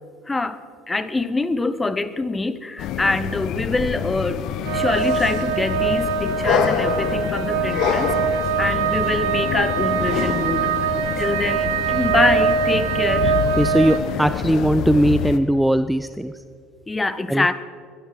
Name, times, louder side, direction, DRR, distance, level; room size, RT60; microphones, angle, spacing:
voice 1, 0.3-10.7 11.2-13.4 16.9-17.6, left 3 dB, 15° left, 15 dB, 0.9 m, -25 dB
sound 1, 2.8-15.4, left 9 dB, 55° left, 0.9 m, -26 dB
sound 2, 4.6-14.0, right 7 dB, 70° right, 1.2 m, -23 dB
voice 2, 13.6-16.3 17.3-17.5, right 1 dB, 5° right, 12 dB, 0.4 m, -19 dB
21.5 x 12.0 x 4.7 m, 2.2 s
hypercardioid pair, 65°, 0 cm